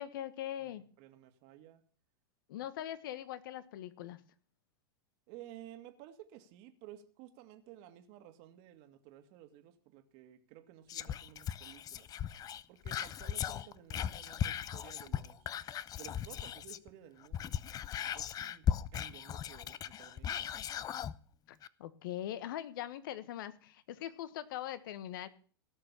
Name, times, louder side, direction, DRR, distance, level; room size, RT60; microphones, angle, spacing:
voice 1, 0.0-0.8 2.5-4.2 21.8-25.3, left 12 dB, 65° left, 14 dB, 1.3 m, -41 dB
voice 2, 0.6-1.8 5.3-12.1 12.7-15.5 16.0-17.5 18.0-20.6, right 12 dB, 50° right, 8 dB, 2.0 m, -54 dB
Whispering, 10.9-16.9 17.2-21.2 21.6-21.7, left 10 dB, 30° left, 0.7 m, -38 dB
17.5 x 6.7 x 7.3 m, 0.42 s
hypercardioid pair, 100°, 12 cm